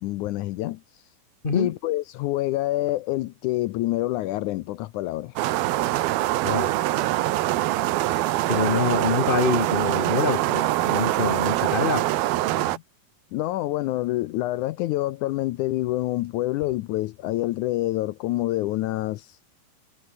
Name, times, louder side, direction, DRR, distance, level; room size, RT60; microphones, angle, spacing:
voice 1, 0.0-0.8 1.5-5.4 12.6-12.8 13.3-19.4, left 16 dB, 80° left, 1.7 m, -27 dB
sound 1, 5.4-12.8, right 16 dB, 90° right, 2.9 m, -24 dB
voice 2, 6.4-6.7 8.5-12.1, left 3 dB, 25° left, 1.3 m, -25 dB
omnidirectional pair, 4.2 m